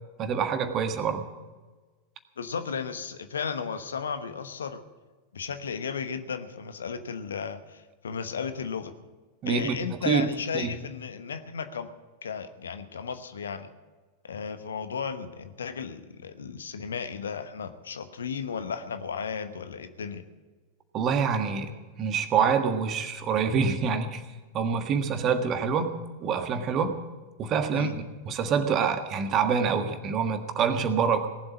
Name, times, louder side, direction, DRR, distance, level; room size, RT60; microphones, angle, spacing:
voice 1, 0.2-1.2 9.4-10.3 10.5-10.7 20.9-21.7 22.0-24.2 24.5-27.0 27.4-31.3, right 6 dB, 30° right, 8 dB, 1.5 m, -26 dB
voice 2, 2.4-4.8 5.3-8.9 9.4-11.9 12.2-13.7 14.2-20.2 27.7-28.0, left 6 dB, 70° left, 10 dB, 1.1 m, -34 dB
18.5 x 7.9 x 9.7 m, 1.3 s
figure-of-eight pair, 90°, 0 cm